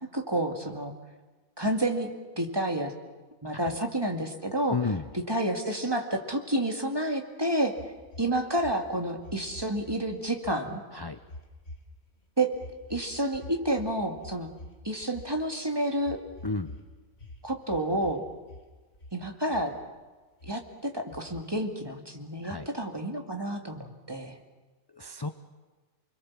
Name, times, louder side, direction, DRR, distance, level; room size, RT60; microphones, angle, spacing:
voice 1, 0.1-0.9 1.6-2.1 2.4-2.9 3.4-4.8 5.1-7.7 8.2-10.8 12.4-12.5 12.9-14.5 14.8-16.2 17.4-18.2 19.1-19.7 20.4-24.4, right 1 dB, 15° right, 3 dB, 2.2 m, -29 dB
voice 2, 4.7-5.0 10.9-11.2 16.4-16.7 22.4-22.7 24.9-25.3, left 4 dB, 25° left, 9 dB, 0.6 m, -32 dB
sound 1, 7.8-10.0 10.3-10.6 11.2-12.1 12.5-15.5 16.0-16.9 17.1-18.2 18.4-19.2 19.5-20.0 20.4-20.5 21.1-21.7, left 1 dB, 50° left, 3.2 m, -47 dB
29.5 x 21.5 x 7.4 m, 1.3 s
omnidirectional pair, 1.4 m